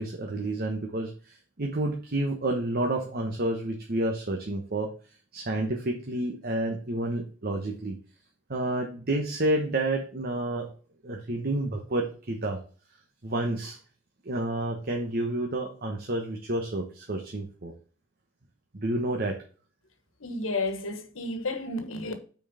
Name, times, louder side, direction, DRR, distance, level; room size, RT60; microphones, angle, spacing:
voice 1, 0.0-4.9 5.3-8.0 8.5-10.7 11.0-12.6 13.2-13.8 14.2-17.7 18.7-19.4, right 1 dB, 50° right, 1.0 m, -30 dB
voice 2, 20.2-22.2, left 2 dB, 85° left, 1.3 m, -31 dB
6.0 x 4.5 x 5.5 m
head